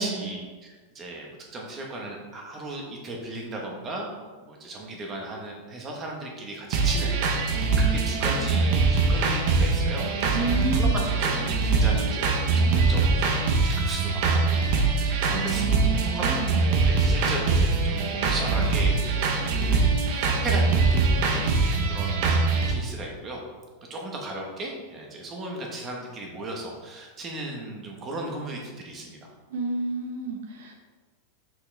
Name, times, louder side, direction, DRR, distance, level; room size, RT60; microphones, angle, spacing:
voice 1, 0.0-4.1 4.4-16.4 16.9-19.8 20.1-21.5 21.9-23.4 23.9-29.2, right 2 dB, 20° right, 0 dB, 1.2 m, -36 dB
sound 1, 6.7-22.7, right 4 dB, 45° right, 1.0 m, -23 dB
voice 2, 10.3-11.0 15.2-16.5 29.5-30.7, right 3 dB, 70° right, 2 dB, 1.5 m, -30 dB
6.1 x 6.1 x 3.4 m, 1.3 s
supercardioid pair, 165°, 0 cm